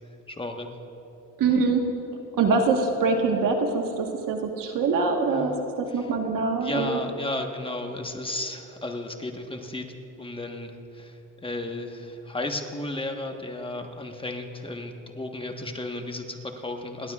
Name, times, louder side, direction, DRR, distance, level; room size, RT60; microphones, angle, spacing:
voice 1, 0.3-0.7 5.3-5.5 5.9-6.1 6.6-9.9 10.2-11.1 11.4-17.1, left 2 dB, 15° left, 3 dB, 1.3 m, -34 dB
voice 2, 1.4-1.9 2.4-7.0, right 4 dB, 70° right, 3 dB, 1.4 m, -24 dB
29.0 x 12.0 x 2.4 m, 2.9 s
cardioid pair, 85°, 34 cm